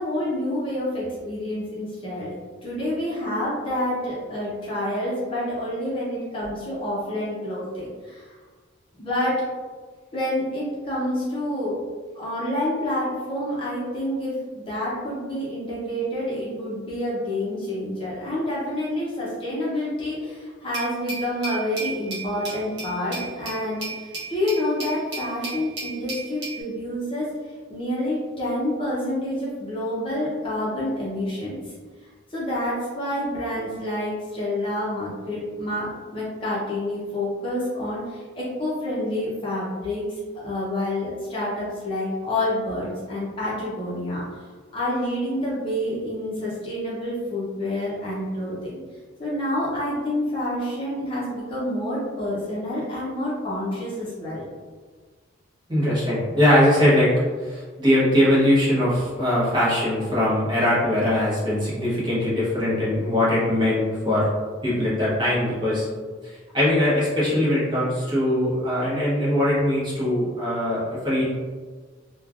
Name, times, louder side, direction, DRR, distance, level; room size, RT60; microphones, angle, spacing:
voice 1, 0.0-2.3 2.6-8.3 9.0-9.4 10.1-11.8 12.1-27.3 27.7-31.7 32.3-48.8 49.2-54.5, left 1 dB, 25° left, -7 dB, 0.6 m, -28 dB
Glass, 20.7-26.6, right 3 dB, 60° right, 1.0 m, -34 dB
voice 2, 55.7-57.1 57.4-64.3 64.6-65.9 66.2-71.2, left 1 dB, 25° right, -8 dB, 0.9 m, -21 dB
3.1 x 2.2 x 2.4 m, 1.5 s
head